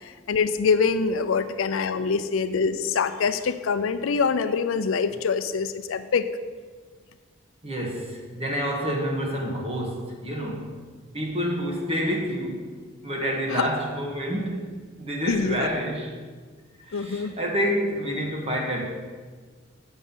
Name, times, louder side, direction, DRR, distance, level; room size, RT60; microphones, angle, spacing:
voice 1, 0.0-6.3 13.5-13.7 15.3-15.7 16.9-17.3, left 5 dB, 80° left, 11 dB, 0.5 m, -25 dB
voice 2, 7.6-10.7 11.1-12.7 13.0-16.1 16.8-18.8, equal, 30° right, 0 dB, 1.2 m, -28 dB
7.4 x 6.3 x 5.5 m, 1.5 s
head